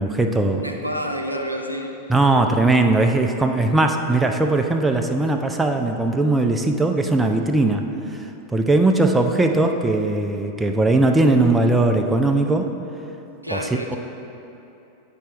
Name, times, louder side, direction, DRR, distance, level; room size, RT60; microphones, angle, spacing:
voice 1, 0.0-0.6 2.1-7.9 8.1-8.2 8.5-12.7 13.5-14.0, right 2 dB, 10° right, 4 dB, 0.4 m, -19 dB
voice 2, 0.6-1.9 13.4-14.0, equal, 90° right, 2 dB, 0.5 m, -28 dB
9.3 x 4.4 x 3.4 m, 2.9 s
figure-of-eight pair, 90°, 0 cm